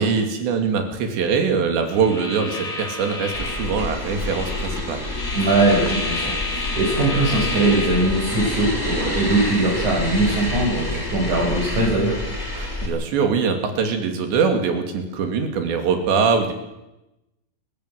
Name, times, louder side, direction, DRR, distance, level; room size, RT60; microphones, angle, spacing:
voice 1, 0.0-5.0 12.5-16.5, right 5 dB, 75° right, 5 dB, 4.8 m, -22 dB
sound 1, 1.9-8.6, left 2 dB, 80° left, 7.9 m, -31 dB
sound 2, 3.3-12.9, left 1 dB, 10° left, 5.6 m, -28 dB
voice 2, 5.3-12.2, right 2 dB, 45° right, -3 dB, 6.7 m, -21 dB
29.0 x 15.0 x 7.8 m, 0.95 s
omnidirectional pair, 5.2 m